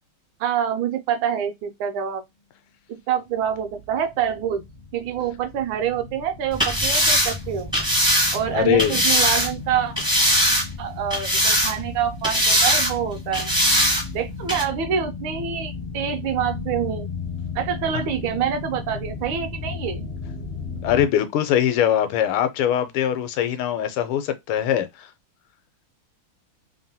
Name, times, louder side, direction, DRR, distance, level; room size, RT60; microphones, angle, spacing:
voice 1, 0.4-2.2 2.9-4.6 4.9-7.7 8.3-9.9 10.8-13.5 14.1-17.1 17.5-20.1, right 8 dB, 75° right, 1.2 m, -26 dB
sound 1, 3.4-21.1, left 4 dB, 55° left, 0.6 m, -35 dB
sound 2, 6.5-9.5 10.0-10.8 11.1-11.9 12.2-12.9 13.3-14.0 14.5-14.6, equal, 5° right, 0.4 m, -20 dB
voice 2, 8.5-9.0 20.8-25.1, left 10 dB, 80° left, 1.5 m, -22 dB
3.5 x 2.1 x 2.7 m
omnidirectional pair, 2.3 m